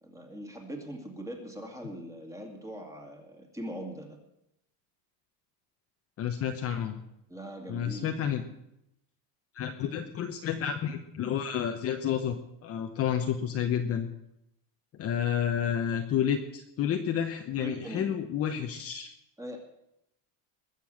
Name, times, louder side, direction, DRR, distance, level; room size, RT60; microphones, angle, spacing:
voice 1, 0.0-4.2 7.3-8.2 17.6-18.2 19.4-19.6, right 1 dB, 5° right, 2 dB, 2.4 m, -41 dB
voice 2, 6.2-7.0 7.7-8.4 9.5-14.1 15.0-19.1, left 9 dB, 30° left, 5 dB, 1.0 m, -30 dB
20.5 x 7.0 x 7.8 m, 0.82 s
cardioid pair, 160°, 44 cm